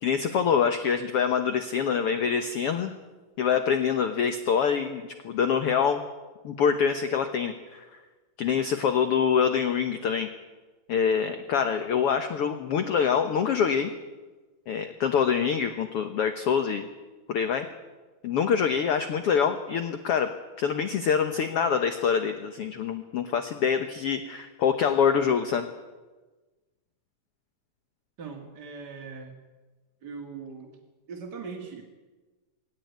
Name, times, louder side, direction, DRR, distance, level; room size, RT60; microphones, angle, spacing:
voice 1, 0.0-2.9 3.4-6.0 6.4-7.9 8.4-10.3 10.9-13.9 14.7-16.9 17.3-17.7 18.2-20.3 20.6-25.7, left 7 dB, 65° left, 8 dB, 1.5 m, -25 dB
voice 2, 28.2-29.4 30.0-30.8 31.1-31.8, right 5 dB, 35° right, 1 dB, 2.1 m, -40 dB
21.0 x 17.5 x 9.3 m, 1.2 s
omnidirectional pair, 3.9 m